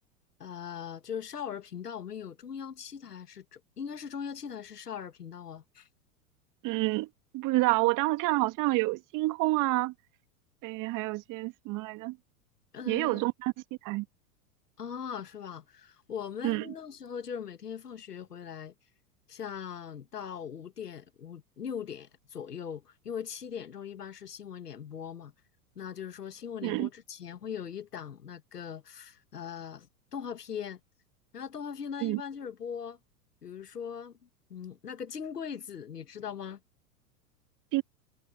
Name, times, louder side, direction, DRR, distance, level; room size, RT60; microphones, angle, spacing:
voice 1, 0.4-5.9 12.7-13.2 14.8-18.7 19.3-25.3 25.8-30.8 31.3-33.0 33.4-34.2 34.5-36.6, left 8 dB, 85° left, 1.9 m, -40 dB
voice 2, 6.6-7.1 7.3-9.9 10.6-12.2 12.9-13.5 13.8-14.1 16.4-16.7 26.6-26.9 32.0-32.2 37.7-37.8, right 21 dB, 40° right, 2.3 m, -28 dB
hypercardioid pair, 100°, 46 cm